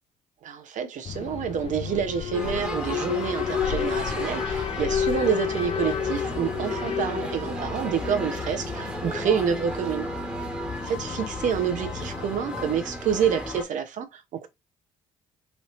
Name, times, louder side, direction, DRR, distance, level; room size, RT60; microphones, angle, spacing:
voice 1, 0.4-10.1 10.8-14.5, right 7 dB, 50° right, 0.7 m, -28 dB
Alarm, 1.0-13.1, left 9 dB, 40° left, 0.4 m, -32 dB
sound 1, 2.3-13.6, equal, 5° right, 1.2 m, -34 dB
3.2 x 2.7 x 3.0 m
hypercardioid pair, 50°, 16 cm